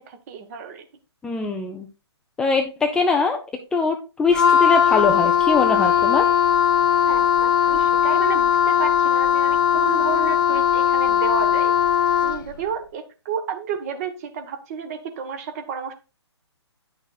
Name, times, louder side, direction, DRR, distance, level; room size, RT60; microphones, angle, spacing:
voice 1, 0.1-0.8 7.0-11.8 12.2-15.9, right 6 dB, 35° right, 8 dB, 1.2 m, -31 dB
voice 2, 1.2-1.9 2.4-3.4 3.7-6.3, left 4 dB, 5° left, 3 dB, 0.3 m, -22 dB
Wind instrument woodwind instrument, 4.3-12.5, left 9 dB, 45° left, 0.6 m, -19 dB
9.7 x 6.2 x 2.3 m, 0.31 s
figure-of-eight pair, 140°, 15 cm